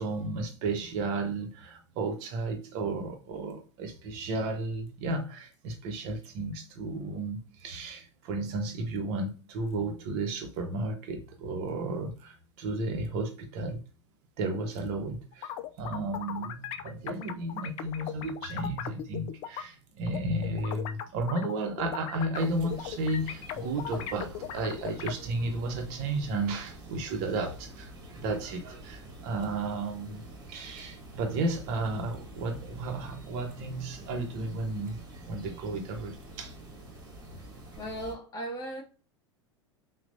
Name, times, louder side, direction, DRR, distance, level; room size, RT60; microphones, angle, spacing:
voice 1, 0.0-13.8 14.4-35.0 35.3-36.6, right 2 dB, 50° right, 0.9 m, -33 dB
sound 1, 15.3-19.6 20.1-25.1, left 10 dB, 40° left, 0.4 m, -38 dB
sound 2, 22.3-38.1, right 1 dB, 25° right, 1.6 m, -47 dB
voice 2, 37.8-38.8, right 1 dB, 25° left, 1.8 m, -36 dB
5.8 x 2.3 x 2.6 m
figure-of-eight pair, 80°, 15 cm